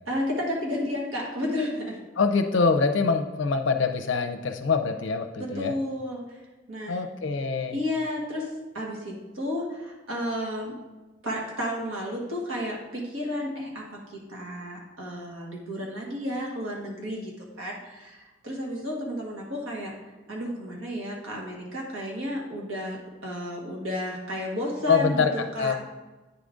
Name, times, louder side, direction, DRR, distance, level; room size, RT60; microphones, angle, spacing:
voice 1, 0.1-2.0 5.4-6.4 6.7-7.0 7.7-10.7 11.2-17.3 17.6-19.9 20.3-23.0 23.2-25.3 25.5-25.7, left 1 dB, 80° right, -2 dB, 1.8 m, -32 dB
voice 2, 2.2-5.7 6.9-7.8 24.9-25.7, left 4 dB, 65° left, 6 dB, 0.5 m, -24 dB
9.2 x 3.8 x 3.7 m, 1.2 s
head